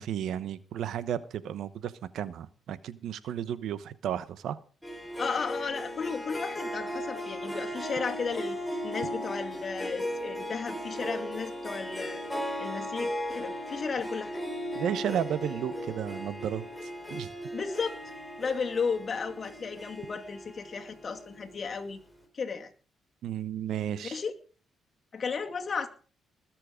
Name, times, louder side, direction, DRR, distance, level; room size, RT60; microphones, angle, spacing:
voice 1, 0.0-4.6 14.7-17.3 23.2-24.2, right 9 dB, 75° right, 15 dB, 1.0 m, -33 dB
Harp, 4.8-21.6, equal, 5° left, 4.0 m, -37 dB
voice 2, 5.2-8.6 8.8-12.2 12.6-14.4 17.5-18.0 18.4-22.0 22.3-22.7 24.0-24.3 25.1-25.9, left 5 dB, 40° left, 4 dB, 2.3 m, -34 dB
20.5 x 7.6 x 5.1 m, 0.39 s
cardioid pair, 90°, 0 cm